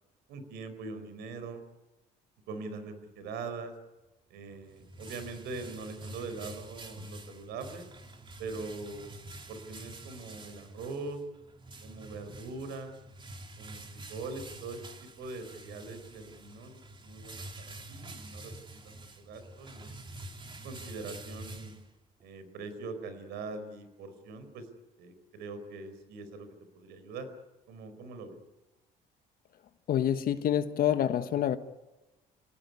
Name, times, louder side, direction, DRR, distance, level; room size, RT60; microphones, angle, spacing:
voice 1, 0.3-1.6 2.5-3.7 4.3-7.9 8.4-9.1 9.5-11.2 11.8-13.0 13.6-14.8 15.2-18.5 18.8-20.1 20.6-21.7 22.2-24.7 25.0-26.5 26.7-27.3 27.7-28.4, right 3 dB, 85° right, 10 dB, 4.6 m, -42 dB
sound 1, 4.4-22.2, right 2 dB, 30° right, 3.3 m, -47 dB
voice 2, 29.9-31.6, left 10 dB, 60° left, 10 dB, 1.4 m, -27 dB
28.5 x 18.0 x 9.7 m, 1.1 s
cardioid pair, 110°, 17 cm